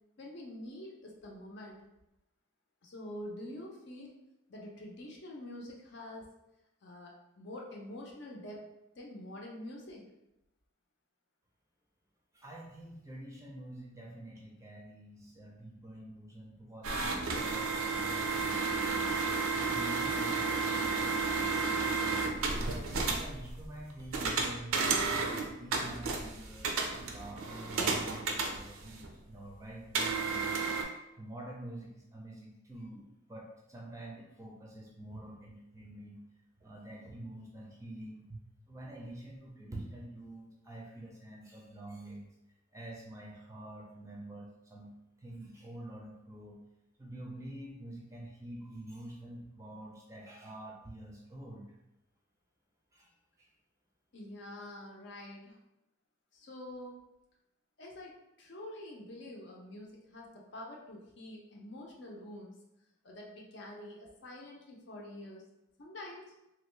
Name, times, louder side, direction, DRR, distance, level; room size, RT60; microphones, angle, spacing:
voice 1, 0.2-1.8 2.8-4.1 4.5-6.3 6.8-8.6 8.9-10.0 54.1-55.6 56.3-57.0 57.8-58.1 58.4-62.5 63.0-65.5 65.8-66.3, left 1 dB, 55° left, -1 dB, 0.6 m, -46 dB
voice 2, 12.3-19.1 19.5-22.5 23.0-25.3 25.5-30.7 31.2-33.0 33.3-36.2 36.6-38.4 38.7-42.3 42.7-44.9 45.2-46.6 47.0-51.7 52.9-53.1 53.4-53.5, right 1 dB, 15° right, -2 dB, 0.5 m, -47 dB
sound 1, 16.8-29.1 29.9-30.8, right 4 dB, 80° right, 0.5 m, -32 dB
3.0 x 2.5 x 3.2 m, 0.90 s
head